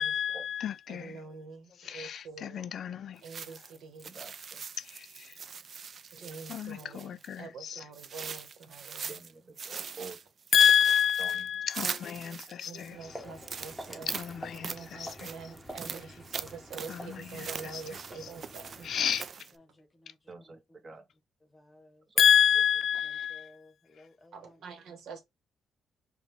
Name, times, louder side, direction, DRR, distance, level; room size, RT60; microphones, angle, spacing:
voice 1, 0.0-1.2 1.8-3.2 4.8-5.3 6.5-7.8 10.5-13.0 14.1-15.1 16.9-17.5 18.8-19.2 22.2-23.5, left 8 dB, 60° left, 0.3 m, -28 dB
voice 2, 0.9-2.6 3.2-4.1 6.1-9.2 12.7-14.2 14.7-18.9 24.3-25.2, right 5 dB, 75° right, 1.1 m, -46 dB
sound 1, 3.2-7.4 7.9-9.3 9.6-12.9 13.4-19.6, right 6 dB, 50° right, 0.3 m, -41 dB
voice 3, 4.0-4.6 6.1-6.4 8.9-10.3 11.2-11.6 13.9-14.1 20.3-21.1 22.1-22.2 22.5-22.6, right 4 dB, 30° right, 1.0 m, -48 dB
voice 4, 12.0-14.1 15.3-15.6 15.9-16.0 16.8-16.9 18.3-18.4 19.5-20.2 21.5-22.1 23.0-24.8, left 3 dB, 25° left, 0.9 m, -58 dB
Walk footsteps, 12.7-19.3, equal, 5° right, 0.9 m, -48 dB
4.9 x 2.2 x 3.2 m
cardioid pair, 90°, 0 cm